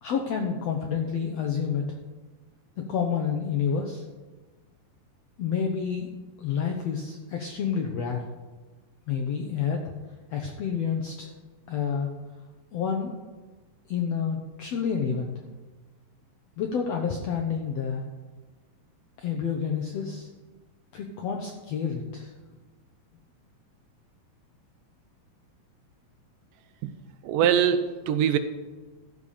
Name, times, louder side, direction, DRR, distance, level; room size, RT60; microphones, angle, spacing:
voice 1, 0.0-1.8 2.8-4.0 5.4-6.1 6.4-8.2 9.1-9.9 10.3-11.3 11.7-12.1 12.7-13.1 13.9-15.3 16.6-18.0 19.2-20.3 20.9-22.3, left 7 dB, 75° left, 1 dB, 1.5 m, -29 dB
voice 2, 27.3-28.4, right 9 dB, 80° right, 10 dB, 2.1 m, -22 dB
13.5 x 6.7 x 5.6 m, 1.3 s
omnidirectional pair, 4.1 m